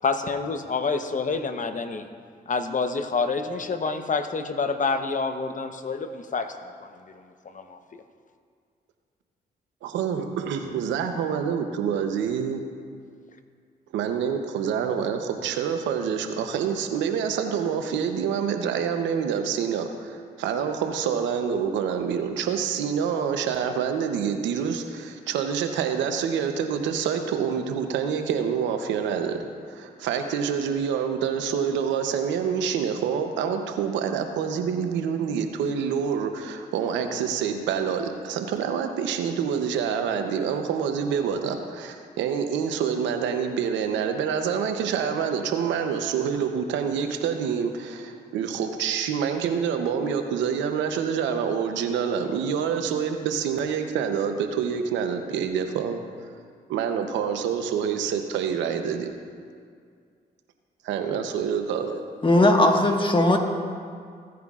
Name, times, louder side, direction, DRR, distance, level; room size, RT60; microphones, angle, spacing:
voice 1, 0.0-2.1 2.5-6.5 6.8-7.0 7.4-8.0, left 4 dB, 45° left, 8 dB, 0.9 m, -28 dB
voice 2, 9.8-12.6 13.9-29.4 29.7-56.0 56.7-59.1 60.8-62.0, right 7 dB, 90° right, 6 dB, 0.8 m, -27 dB
voice 3, 62.2-63.4, left 1 dB, 25° left, 3 dB, 1.5 m, -18 dB
16.0 x 9.4 x 2.4 m, 2.2 s
supercardioid pair, 50°, 19 cm